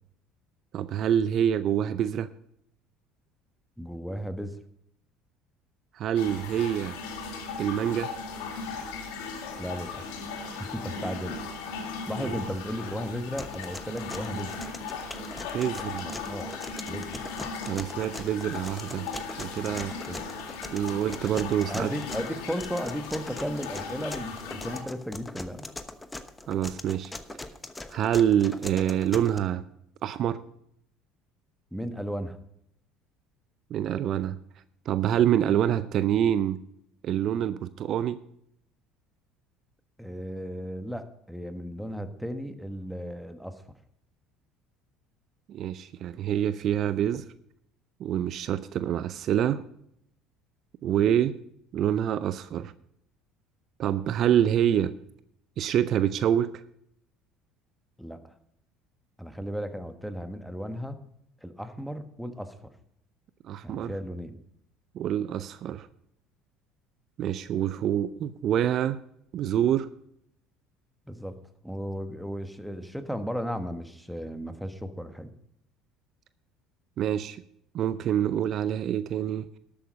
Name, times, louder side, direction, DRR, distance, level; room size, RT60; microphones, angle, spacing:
voice 1, 0.7-2.3 5.9-6.9 7.6-8.1 12.2-12.4 15.5-16.0 17.7-19.1 19.4-19.9 20.7-21.9 26.5-27.1 27.9-29.6 30.0-30.4 33.7-34.4 34.9-36.6 37.0-38.2 45.5-47.2 48.0-49.6 50.8-51.4 51.7-52.7 53.8-54.9 55.6-56.5 63.4-63.9 64.9-65.9 67.2-69.0 69.3-69.9 77.0-77.4 77.7-79.5, right 10 dB, 55° right, 14 dB, 0.5 m, -26 dB
voice 2, 3.8-4.6 9.6-10.2 10.6-11.4 12.1-14.6 16.0-16.6 16.9-17.2 19.7-20.2 21.6-25.7 31.7-32.4 40.0-43.6 58.0-58.3 59.2-61.0 61.4-62.7 63.6-64.4 71.1-71.4 71.6-75.3, equal, ahead, 8 dB, 1.3 m, -35 dB
sound 1, 6.1-24.8, left 4 dB, 80° left, 2.1 m, -37 dB
sound 2, 13.4-29.4, left 2 dB, 15° left, 1.1 m, -41 dB
12.0 x 8.6 x 5.2 m, 0.73 s
hypercardioid pair, 75°, 0 cm